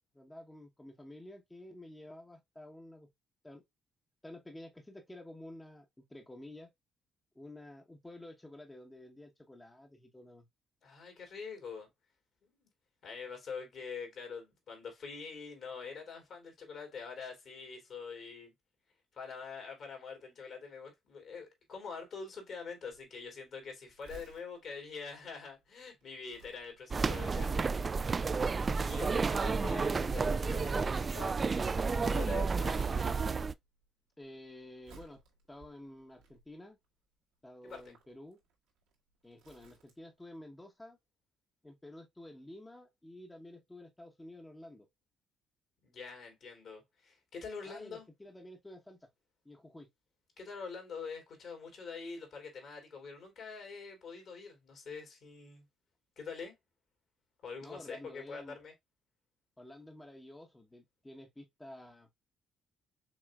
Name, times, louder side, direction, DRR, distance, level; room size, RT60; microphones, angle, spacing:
voice 1, 0.1-3.1 3.4-3.6 4.2-6.7 7.3-10.5 34.2-35.2 35.5-36.8 37.4-38.4 39.2-41.0 41.6-44.9 47.7-49.1 49.4-49.9 57.6-58.6 59.6-62.1, left 1 dB, 15° left, 1.0 m, -51 dB
voice 2, 10.8-11.9 12.4-12.7 13.0-18.5 19.1-27.6 28.7-31.4 32.1-32.8 37.6-37.8 45.8-48.1 50.4-55.7 56.2-56.5 57.4-58.7, left 5 dB, 60° left, 2.8 m, -45 dB
Crumpling crinkling, 22.9-32.5 32.9-33.8 34.1-36.8 37.5-40.2 40.5-40.6, right 3 dB, 85° right, 1.8 m, -60 dB
sound 1, 26.9-33.5, right 4 dB, 35° right, 0.3 m, -31 dB
6.2 x 3.2 x 2.3 m
supercardioid pair, 65°, 0 cm